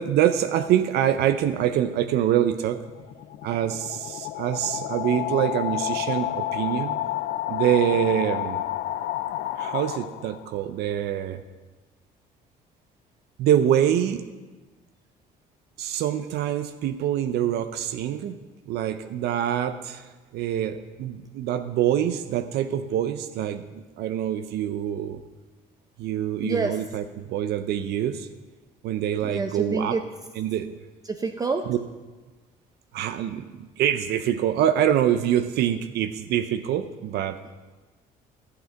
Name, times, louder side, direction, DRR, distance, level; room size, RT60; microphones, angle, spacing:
voice 1, 0.0-2.8 3.4-7.0 7.5-8.6 9.6-11.4 13.4-14.2 15.8-18.4 18.7-20.0 20.3-25.2 26.0-28.3 28.8-30.0 30.4-30.8 31.7-31.8 32.9-37.4, right 10 dB, 75° right, 10 dB, 0.6 m, -25 dB
sound 1, 2.8-10.6, left 13 dB, 75° left, 0.4 m, -30 dB
voice 2, 26.4-26.8 29.2-30.0 31.0-31.7, right 3 dB, 20° right, 5 dB, 0.5 m, -27 dB
12.0 x 8.0 x 4.6 m, 1.2 s
cardioid pair, 110°, 17 cm